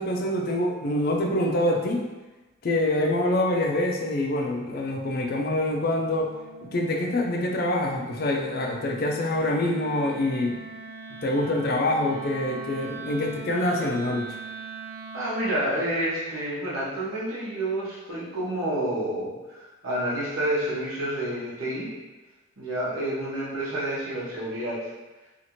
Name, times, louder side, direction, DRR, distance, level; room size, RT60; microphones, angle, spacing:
voice 1, 0.0-2.1 2.6-6.3 6.6-10.6 11.2-14.3, left 1 dB, 45° left, 1 dB, 0.3 m, -25 dB
Wind instrument woodwind instrument, 4.1-15.6, right 3 dB, 40° right, 0.4 m, -42 dB
voice 2, 15.1-21.9 22.6-24.9, right 1 dB, 85° right, -7 dB, 1.0 m, -29 dB
2.7 x 2.4 x 2.9 m, 1.1 s
head